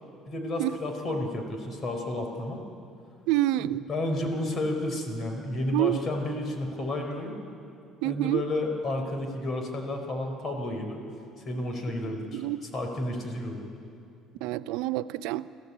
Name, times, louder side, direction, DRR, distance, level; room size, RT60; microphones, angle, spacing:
voice 1, 0.3-2.6 3.6-7.4 8.0-11.1 11.5-12.4 12.7-13.6, left 1 dB, 45° left, 4 dB, 4.4 m, -31 dB
voice 2, 3.3-3.9 5.7-6.0 8.0-8.4 12.3-12.6 14.4-15.5, right 15 dB, 85° right, 15 dB, 0.5 m, -27 dB
27.0 x 14.5 x 8.6 m, 2.5 s
cardioid pair, 105°, 0 cm